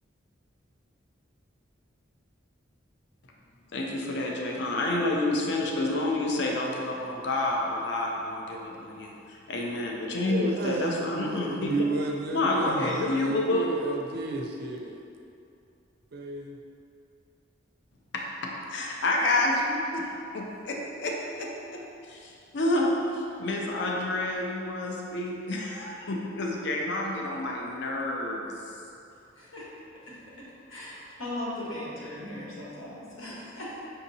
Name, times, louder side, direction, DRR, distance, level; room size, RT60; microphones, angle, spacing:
voice 1, 3.7-11.7 12.3-13.7 18.1-21.8 22.1-28.5, left 2 dB, 60° left, -1 dB, 0.5 m, -29 dB
voice 2, 10.3-15.0 16.1-16.6, right 2 dB, 55° right, 1 dB, 0.4 m, -32 dB
voice 3, 29.4-29.7 30.7-33.8, left 1 dB, 85° left, -7 dB, 1.1 m, -38 dB
5.5 x 2.8 x 2.6 m, 2.6 s
head